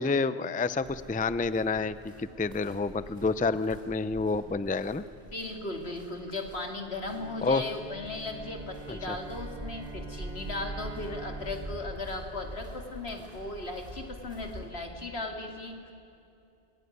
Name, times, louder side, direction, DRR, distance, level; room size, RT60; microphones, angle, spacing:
voice 1, 0.0-5.0 7.4-7.6 8.9-9.2, left 4 dB, 10° left, 14 dB, 0.4 m, -29 dB
sound 1, 0.7-14.7, right 1 dB, 40° right, 5.7 m, -45 dB
voice 2, 5.3-15.9, left 2 dB, 80° left, 3 dB, 2.9 m, -37 dB
Bowed string instrument, 7.0-13.2, right 5 dB, 65° left, 6.1 m, -47 dB
28.5 x 21.0 x 9.5 m, 2.7 s
omnidirectional pair, 1.0 m